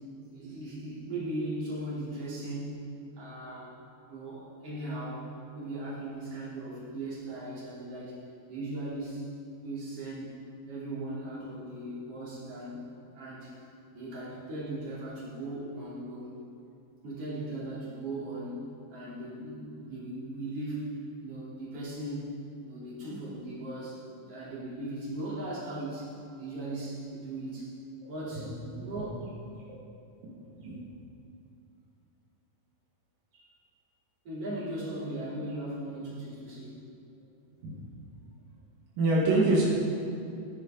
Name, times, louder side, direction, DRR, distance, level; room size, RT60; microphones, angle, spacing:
voice 1, 0.3-2.9 3.2-3.7 4.1-5.3 5.5-8.2 8.5-9.3 9.6-10.3 10.7-13.5 13.9-16.3 17.0-20.9 21.2-22.3 22.6-26.1 26.4-27.7 28.1-28.5 28.8-29.2 30.6-30.7 33.3-33.5 34.2-36.7, right 1 dB, 45° right, -9 dB, 4.5 m, -38 dB
voice 2, 28.0-28.9 30.2-30.8 37.6-37.7 39.0-39.6, right 2 dB, 85° right, -5 dB, 3.6 m, -28 dB
17.0 x 10.5 x 3.9 m, 2.6 s
omnidirectional pair, 3.9 m